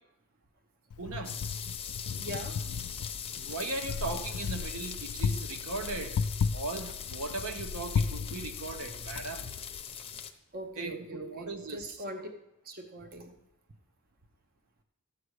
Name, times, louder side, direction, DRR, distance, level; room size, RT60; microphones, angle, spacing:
Wind, 0.9-9.8, left 5 dB, 70° left, 0.4 m, -35 dB
voice 1, 1.0-1.4 3.4-6.2 6.5-9.5 10.8-12.0, right 3 dB, 70° right, 6 dB, 1.0 m, -38 dB
sound 1, 1.2-10.3, left 8 dB, 25° left, 0.7 m, -41 dB
voice 2, 2.1-2.6 10.5-12.3 12.6-13.4, right 1 dB, 40° right, 5 dB, 0.8 m, -41 dB
13.0 x 7.8 x 4.8 m, 0.86 s
head